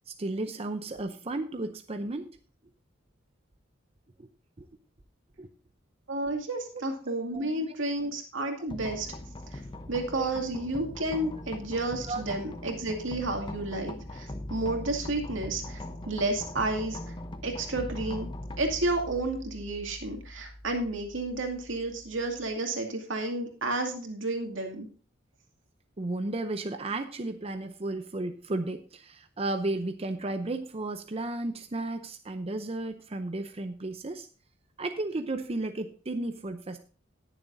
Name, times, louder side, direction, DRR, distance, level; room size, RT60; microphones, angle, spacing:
voice 1, 0.1-2.3 4.2-4.3 4.6-4.7 5.4-5.5 6.7-7.8 10.2-10.3 12.1-12.2 26.0-34.3 34.8-36.8, right 2 dB, 30° right, 7 dB, 0.6 m, -34 dB
voice 2, 6.1-9.1 9.5-9.6 9.9-15.8 16.1-17.0 17.4-18.3 18.6-24.9, right 2 dB, 85° right, 3 dB, 2.3 m, -31 dB
sound 1, 8.7-22.5, left 1 dB, 25° left, 0.9 m, -41 dB
19.0 x 7.1 x 2.7 m, 0.39 s
head